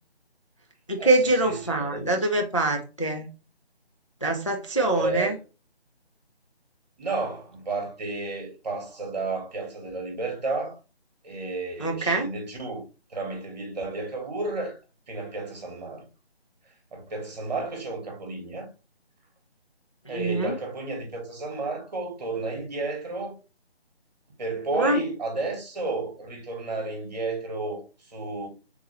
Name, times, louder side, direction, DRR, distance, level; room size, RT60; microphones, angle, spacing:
voice 1, 0.9-3.3 4.2-5.4 11.8-12.3 20.1-20.5 24.8-25.0, right 2 dB, 30° left, 0.4 m, -24 dB
voice 2, 1.4-2.2 4.7-5.3 7.0-10.8 11.2-12.8 13.1-14.8 15.1-16.0 16.9-18.7 20.1-23.4 24.4-28.5, right 3 dB, 40° right, 1.4 m, -32 dB
3.6 x 2.8 x 3.1 m
figure-of-eight pair, 160°, 32 cm